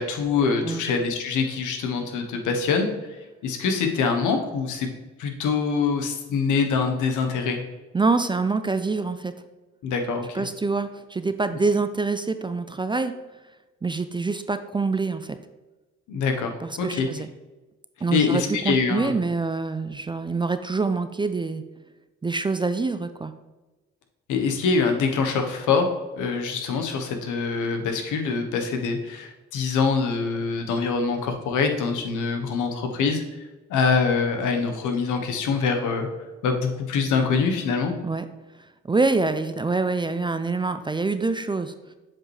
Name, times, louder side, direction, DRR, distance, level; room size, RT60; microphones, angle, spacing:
voice 1, 0.0-2.9 3.4-4.9 5.2-7.6 9.8-10.3 16.1-17.1 18.1-19.1 24.3-25.9 26.2-33.2 33.7-36.1 36.4-37.9, left 5 dB, 85° left, 5 dB, 1.0 m, -24 dB
voice 2, 7.9-9.3 10.3-13.1 13.8-15.4 16.6-17.3 18.0-21.6 22.2-23.3 38.0-38.3 38.9-41.9, right 3 dB, 15° right, 10 dB, 0.3 m, -25 dB
7.4 x 5.2 x 3.2 m, 1.1 s
cardioid pair, 90°, 30 cm